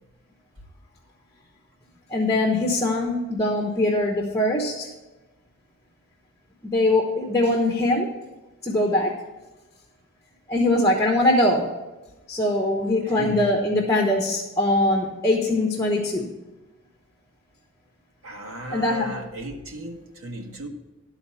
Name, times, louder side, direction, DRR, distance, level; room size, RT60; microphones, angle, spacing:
voice 1, 2.1-4.9 6.6-8.1 8.6-9.2 10.5-11.7 12.3-16.3 18.7-19.2, left 1 dB, 15° left, 0 dB, 1.0 m, -22 dB
voice 2, 13.1-13.5 18.2-20.7, right 1 dB, 80° right, 2 dB, 1.4 m, -35 dB
12.0 x 4.1 x 7.0 m, 1.1 s
head